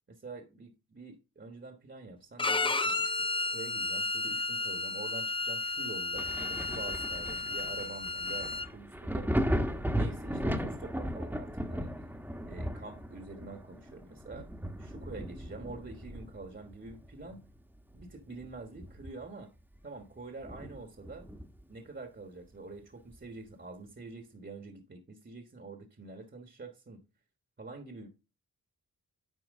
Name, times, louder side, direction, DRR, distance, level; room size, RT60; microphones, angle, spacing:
voice 1, 0.1-11.9 12.5-14.5 14.8-17.4 17.9-19.5 19.8-21.3 21.7-27.0 27.6-28.1, right 3 dB, 30° right, 1.4 m, -46 dB
Bowed string instrument, 2.4-8.7, left 3 dB, 15° left, 0.5 m, -33 dB
Thunder, 6.1-17.5 17.9-19.4 19.8-19.9 20.4-21.7 23.1-23.2, equal, 5° right, 1.2 m, -36 dB
9.5 x 4.5 x 3.6 m
cardioid pair, 50°, 37 cm